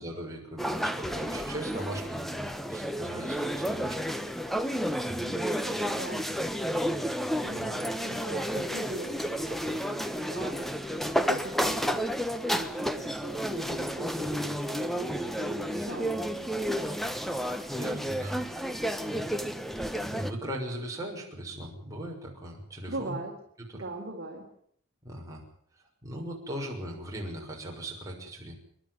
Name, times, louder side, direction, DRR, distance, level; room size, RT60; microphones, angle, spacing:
voice 1, 0.0-4.0 4.5-4.8 5.1-5.8 7.5-7.7 17.7-19.5 20.0-23.2 23.7-23.8 25.0-25.4 26.0-28.5, right 1 dB, 15° right, -2 dB, 6.5 m, -39 dB
sound 1, 0.6-20.3, equal, ahead, 1.1 m, -31 dB
voice 2, 5.2-6.4 7.4-17.5 22.9-23.3 23.8-24.4, right 2 dB, 45° right, 0 dB, 4.1 m, -41 dB
28.5 x 11.5 x 9.5 m, 0.62 s
head